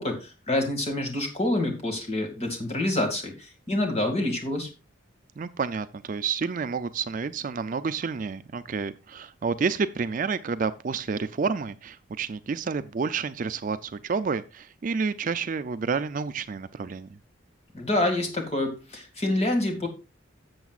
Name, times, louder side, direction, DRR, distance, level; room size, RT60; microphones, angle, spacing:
voice 1, 0.0-4.7 17.7-19.9, left 1 dB, 30° left, 3 dB, 2.1 m, -27 dB
voice 2, 5.4-17.2, right 5 dB, 40° right, 12 dB, 0.4 m, -29 dB
14.0 x 7.1 x 2.4 m, 0.29 s
head